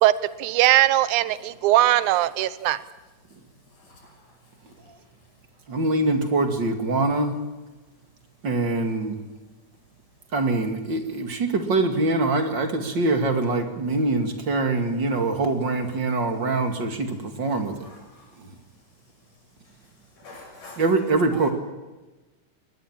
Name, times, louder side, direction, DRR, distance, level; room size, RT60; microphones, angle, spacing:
voice 1, 0.4-2.8, right 14 dB, 75° right, 16 dB, 2.3 m, -20 dB
voice 2, 3.8-4.2 17.5-18.3 20.2-20.8 21.3-21.5, left 2 dB, 80° left, 2 dB, 7.9 m, -46 dB
voice 3, 5.7-7.4 8.4-9.2 10.3-17.7 18.4-18.6 20.8-21.5, right 2 dB, 40° right, 6 dB, 2.7 m, -24 dB
22.5 x 20.0 x 7.5 m, 1.1 s
omnidirectional pair, 3.6 m